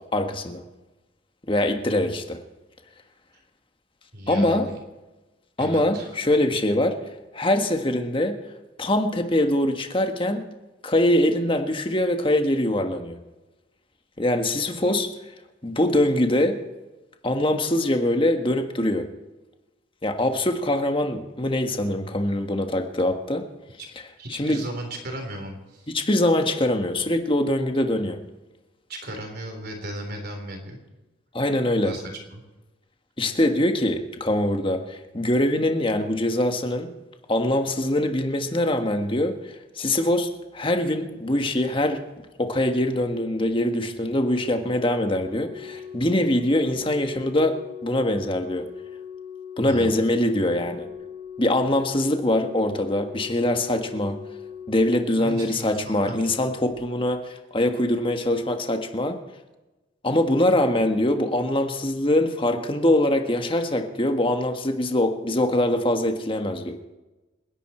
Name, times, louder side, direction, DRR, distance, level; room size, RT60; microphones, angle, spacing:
voice 1, 0.1-0.6 1.5-2.4 4.3-4.7 5.6-7.0 7.3-8.4 8.8-10.4 10.8-13.2 14.2-15.1 15.6-16.6 17.2-19.1 20.0-23.4 24.3-24.6 25.9-28.2 31.3-31.9 33.2-36.9 37.3-42.0 42.4-48.7 49.6-50.9 51.4-54.2 54.7-59.2 60.0-66.8, left 1 dB, 25° left, 5 dB, 1.5 m, -23 dB
voice 2, 4.1-4.8 5.6-6.2 24.2-25.9 28.9-30.8 31.8-32.0 32.3-32.4 46.1-46.2 49.7-50.0 55.2-56.3, right 1 dB, 50° right, 4 dB, 3.8 m, -36 dB
Organ, 44.7-55.5 56.7-56.9, left 7 dB, 20° right, 3.5 m, -40 dB
28.5 x 11.0 x 4.4 m, 1.1 s
head